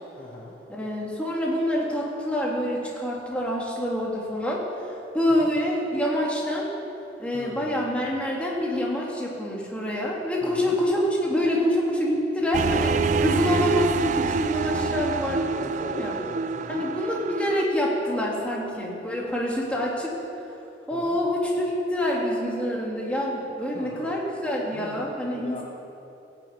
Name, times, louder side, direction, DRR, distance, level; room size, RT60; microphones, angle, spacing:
voice 1, 0.2-0.5 5.4-5.5 7.3-8.1 10.4-10.8 14.6-14.9 15.4-16.9 20.9-21.2 23.7-24.1 24.7-25.6, left 1 dB, 30° left, -2 dB, 1.1 m, -41 dB
voice 2, 0.7-6.7 7.2-16.2 16.7-20.1 20.9-25.6, left 1 dB, 5° left, -3 dB, 2.2 m, -26 dB
sound 1, 12.5-17.6, right 4 dB, 45° right, 0.3 m, -26 dB
15.5 x 7.7 x 8.6 m, 2.9 s
head